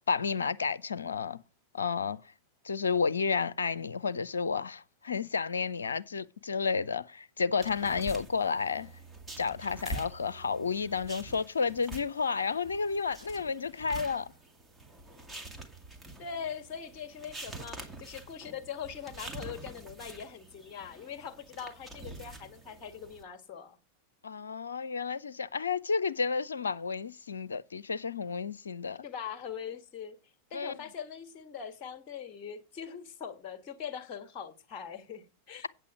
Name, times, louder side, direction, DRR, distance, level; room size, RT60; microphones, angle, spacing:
voice 1, 0.0-1.4 1.7-2.2 2.6-8.9 9.4-14.3 24.2-29.0 30.5-30.7, left 5 dB, 70° left, 0.5 m, -31 dB
sound 1, 7.6-23.2, right 1 dB, 10° right, 2.0 m, -46 dB
voice 2, 16.2-23.8 29.0-30.2 30.5-35.7, left 7 dB, 40° left, 1.6 m, -42 dB
8.7 x 8.3 x 4.9 m
figure-of-eight pair, 90°, 0 cm